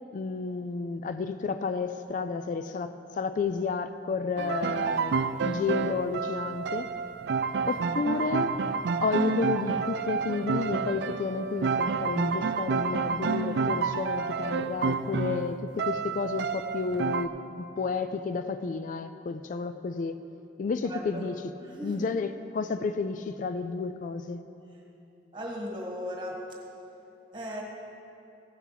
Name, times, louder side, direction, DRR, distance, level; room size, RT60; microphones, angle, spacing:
voice 1, 0.1-6.9 7.7-8.6 9.0-20.2 20.6-21.4 21.8-24.4, left 4 dB, 45° left, 10 dB, 0.3 m, -31 dB
sound 1, 4.4-17.3, right 5 dB, 65° right, 0.4 m, -29 dB
voice 2, 20.9-21.2 21.6-22.1 25.3-26.4 27.3-27.6, equal, 25° right, -1 dB, 1.6 m, -37 dB
15.0 x 5.9 x 5.8 m, 2.8 s
head